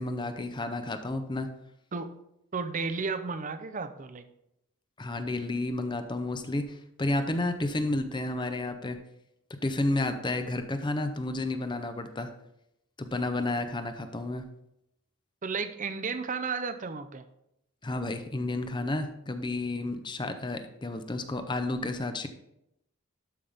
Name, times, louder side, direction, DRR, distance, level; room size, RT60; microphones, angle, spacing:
voice 1, 0.0-1.5 5.0-9.0 9.6-12.3 13.0-14.4 17.8-22.3, left 2 dB, 20° left, 8 dB, 0.6 m, -31 dB
voice 2, 2.5-4.3 15.4-17.2, right 4 dB, 35° right, 11 dB, 0.6 m, -33 dB
12.0 x 5.5 x 3.5 m, 0.82 s
head